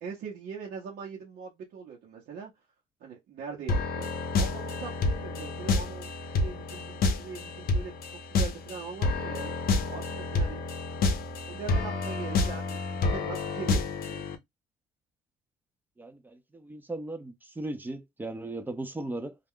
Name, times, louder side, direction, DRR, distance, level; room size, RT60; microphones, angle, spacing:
voice 1, 0.0-2.5 3.0-7.9 8.3-9.5 9.9-10.6 11.5-14.2, right 6 dB, 65° right, 0.8 m, -41 dB
sound 1, 3.7-14.4, left 3 dB, 60° left, 0.7 m, -29 dB
voice 2, 16.0-19.4, right 2 dB, 10° right, 0.5 m, -37 dB
2.3 x 2.2 x 3.5 m
cardioid pair, 110°, 17 cm